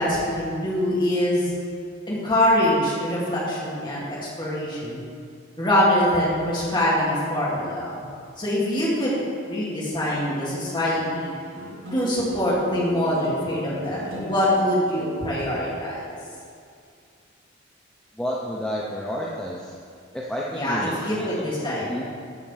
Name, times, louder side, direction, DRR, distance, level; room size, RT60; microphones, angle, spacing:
voice 1, 0.0-1.5 2.1-5.0 5.6-8.0 8.4-9.2 9.5-11.3 11.9-16.2 20.5-21.9, left 1 dB, 25° left, -7 dB, 1.9 m, -24 dB
sound 1, 10.5-15.5, left 1 dB, 90° right, 2.4 m, -38 dB
voice 2, 18.2-19.7 20.1-21.3 21.8-22.0, equal, 5° left, -5 dB, 0.6 m, -30 dB
7.3 x 5.7 x 7.2 m, 2.3 s
head